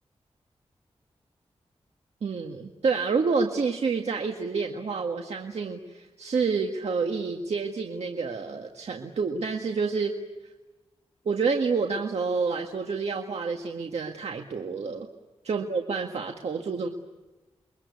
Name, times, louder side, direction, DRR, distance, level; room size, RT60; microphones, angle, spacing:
voice 1, 2.2-10.1 11.3-15.1 15.5-16.9, right 4 dB, 80° right, 3 dB, 1.8 m, -28 dB
29.5 x 23.0 x 8.5 m, 1.2 s
wide cardioid pair, 85°, 11 cm